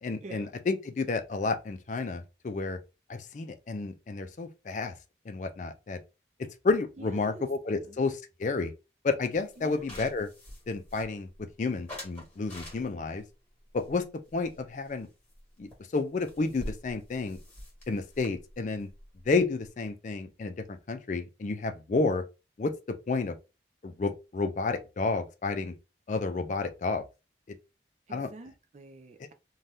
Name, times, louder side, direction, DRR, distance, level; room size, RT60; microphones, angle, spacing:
voice 1, 0.0-2.8 3.1-4.9 5.3-6.0 6.6-8.7 9.0-10.3 10.7-13.2 13.7-14.1 14.3-15.1 15.6-17.4 17.9-18.9 19.3-22.3 22.6-23.4 23.8-25.7 26.1-27.0 27.5-27.6 28.1-28.3, left 3 dB, 40° left, 0.4 m, -31 dB
voice 2, 7.0-7.5 7.7-8.0 9.6-9.9 28.1-29.3, right 2 dB, 40° right, 0.4 m, -47 dB
sound 1, 9.3-11.4 11.9-13.2 13.8-15.0 15.3-15.4 15.7-15.8 16.0-19.9, left 1 dB, 10° left, 1.4 m, -46 dB
2.7 x 2.3 x 3.3 m
head